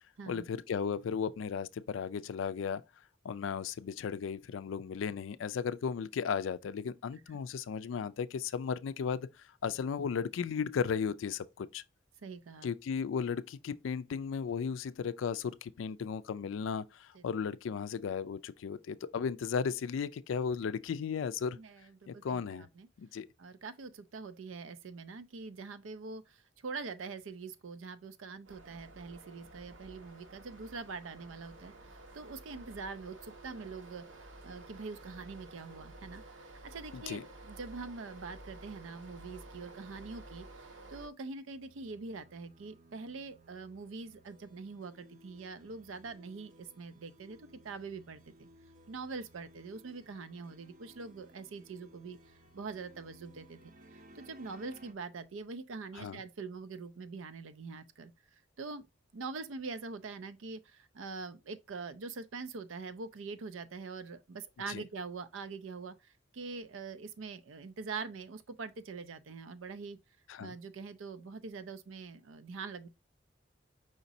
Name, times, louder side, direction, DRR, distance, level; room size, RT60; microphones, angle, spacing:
voice 1, 0.3-2.8 3.2-9.3 9.6-11.8 12.6-21.6 22.1-22.7 23.0-23.3 36.9-37.2 56.0-56.2 64.7-64.8 70.3-70.5, left 6 dB, 80° left, 0.3 m, -35 dB
voice 2, 12.2-12.7 17.1-17.2 21.6-22.9 23.4-48.5 48.9-52.2 52.5-53.6 53.9-58.8 59.1-70.0 70.4-72.9, right 4 dB, 90° right, 0.5 m, -44 dB
sound 1, 28.5-41.1, right 2 dB, 70° right, 0.9 m, -52 dB
sound 2, 41.5-54.9, right 1 dB, 45° right, 0.6 m, -60 dB
5.0 x 4.0 x 2.6 m
head